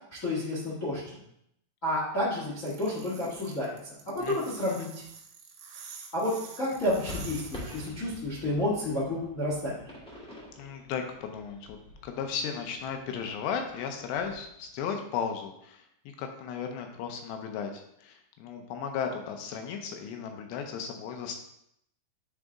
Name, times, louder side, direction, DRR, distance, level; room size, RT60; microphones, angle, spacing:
voice 1, 0.2-1.0 1.8-3.7 4.0-4.9 6.1-9.8, left 1 dB, 45° left, -8 dB, 1.0 m, -30 dB
sound 1, 2.7-7.9, right 6 dB, 80° right, 3.4 m, -47 dB
voice 2, 4.2-4.9 10.6-11.8 12.0-15.8 16.2-21.4, left 7 dB, 80° left, 4 dB, 2.7 m, -35 dB
sound 2, 6.8-14.8, left 2 dB, 5° left, 1.2 m, -47 dB
10.0 x 4.0 x 3.6 m, 0.74 s
omnidirectional pair, 5.3 m